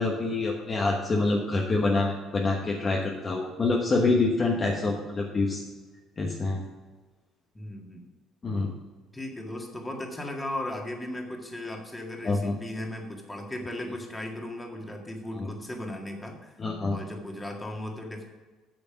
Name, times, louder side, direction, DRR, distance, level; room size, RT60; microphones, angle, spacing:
voice 1, 0.0-5.6 6.2-6.6 8.4-8.7 12.2-12.5 15.4-15.5 16.6-17.0, left 3 dB, 30° left, 0 dB, 1.2 m, -26 dB
voice 2, 7.5-8.1 9.1-16.6 16.9-18.3, left 1 dB, 10° left, 1 dB, 1.9 m, -36 dB
8.8 x 6.9 x 5.8 m, 1.3 s
cardioid pair, 125°, 0 cm